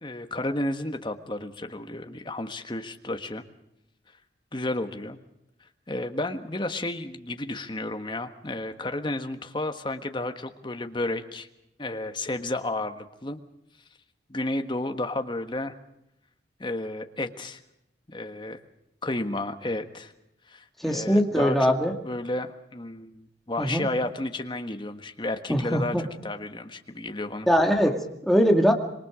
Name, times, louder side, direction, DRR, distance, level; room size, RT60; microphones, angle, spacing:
voice 1, 0.0-3.4 4.5-5.2 5.9-11.5 11.8-13.4 14.3-15.7 16.6-17.6 18.1-18.6 19.0-20.1 20.5-21.7 22.0-27.5, left 2 dB, 25° left, 6 dB, 1.4 m, -32 dB
voice 2, 20.8-21.9 23.6-23.9 25.5-26.1 27.5-28.7, equal, ahead, 2 dB, 2.1 m, -22 dB
26.5 x 23.0 x 5.0 m, 0.82 s
head